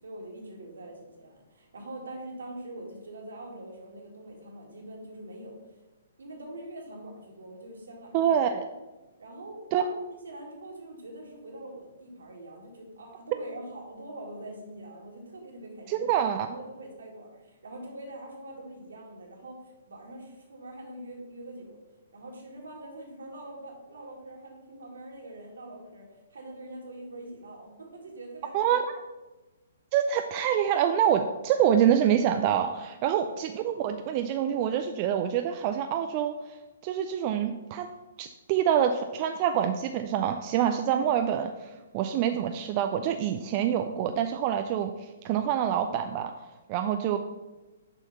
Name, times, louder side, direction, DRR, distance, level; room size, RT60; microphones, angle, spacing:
voice 1, 0.0-5.6 6.2-8.3 9.2-16.2 16.5-21.8 22.1-28.7 33.0-33.3, right 1 dB, 70° right, 0 dB, 2.1 m, -44 dB
voice 2, 8.1-8.6 9.7-9.8 15.9-16.5 28.5-28.8 29.9-36.6 36.8-37.9 38.2-46.3 46.7-47.2, right 9 dB, 35° right, 6 dB, 0.4 m, -26 dB
6.9 x 4.6 x 5.5 m, 1.1 s
figure-of-eight pair, 125°, 0 cm